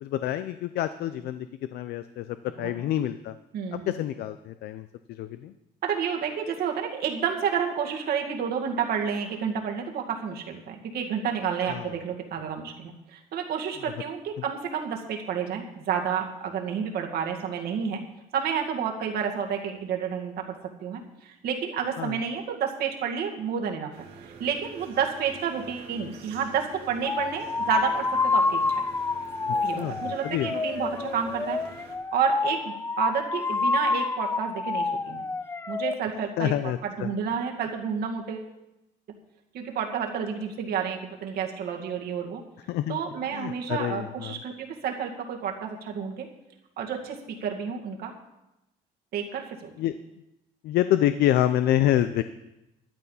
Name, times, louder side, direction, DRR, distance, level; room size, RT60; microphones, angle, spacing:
voice 1, 0.0-1.5 1.7-3.4 3.7-5.5 11.7-11.9 22.0-22.2 29.7-30.5 36.4-37.1 42.7-43.0 43.3-44.4 49.8-50.0 50.6-52.2, left 12 dB, 75° left, 11 dB, 0.5 m, -27 dB
voice 2, 3.5-3.9 5.8-18.0 18.3-20.6 20.8-23.9 24.2-28.8 29.5-31.6 32.1-35.3 35.7-36.5 36.8-38.5 39.5-42.4 42.9-46.3 46.8-48.1 49.1-49.7, right 7 dB, 65° right, 2 dB, 2.1 m, -30 dB
sound 1, 23.9-32.0, right 4 dB, 85° right, 2.1 m, -47 dB
sound 2, 27.1-35.9, left 3 dB, 15° left, 0.3 m, -28 dB
12.5 x 9.2 x 5.6 m, 0.93 s
cardioid pair, 110°, 17 cm